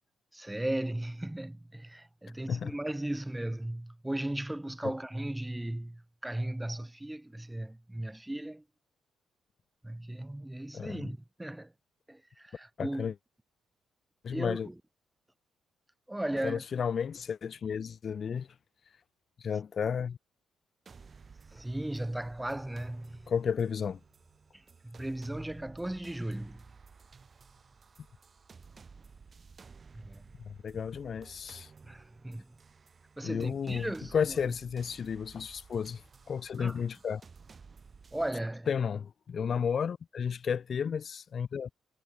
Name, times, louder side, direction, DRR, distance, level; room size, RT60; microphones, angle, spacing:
voice 1, 0.3-8.6 9.8-11.7 12.1-13.1 14.3-14.7 16.1-16.6 21.5-23.3 24.5-26.6 29.9-30.2 31.8-32.5 33.2-34.1 36.6-36.8 38.1-38.7, right 1 dB, 10° right, 0.8 m, -36 dB
voice 2, 12.8-13.1 14.2-14.7 16.4-18.5 19.4-20.2 23.3-24.0 30.4-31.7 33.2-37.2 38.7-41.7, left 7 dB, 50° left, 0.7 m, -33 dB
sound 1, 20.9-38.3, right 5 dB, 35° right, 2.3 m, -55 dB
cardioid pair, 90°, 0 cm